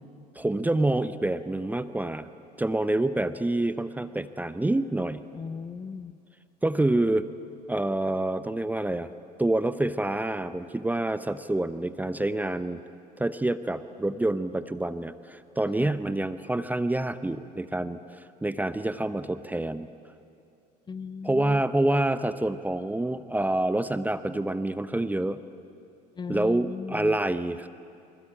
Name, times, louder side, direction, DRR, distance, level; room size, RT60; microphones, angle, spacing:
voice 1, 0.3-2.3 2.6-5.2 6.6-7.3 7.7-9.1 9.4-12.8 13.2-18.0 18.4-19.9 21.2-25.4 26.3-27.7, right 1 dB, 10° right, 13 dB, 0.9 m, -27 dB
voice 2, 5.3-6.2 15.8-16.0 20.9-21.6 26.2-27.2, left 5 dB, 20° left, 14 dB, 0.9 m, -37 dB
29.0 x 22.0 x 8.7 m, 2.5 s
figure-of-eight pair, 65°, 21 cm